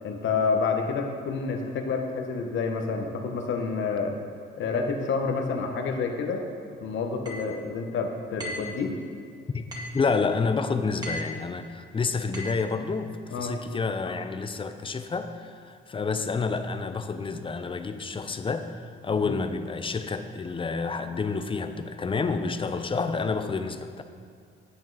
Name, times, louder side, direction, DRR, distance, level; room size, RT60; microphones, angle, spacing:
voice 1, 0.0-4.1 4.6-6.4 6.8-8.9 13.3-13.5 19.1-19.3, left 4 dB, 70° left, 4 dB, 1.2 m, -28 dB
sound 1, 7.3-7.5 8.4-8.7 9.7-10.0 11.0-11.4 12.3-12.6, left 1 dB, 20° right, 2.2 m, -36 dB
voice 2, 9.5-24.0, left 4 dB, 25° left, 9 dB, 0.6 m, -29 dB
10.0 x 7.4 x 4.0 m, 2.3 s
cardioid pair, 90°, 20 cm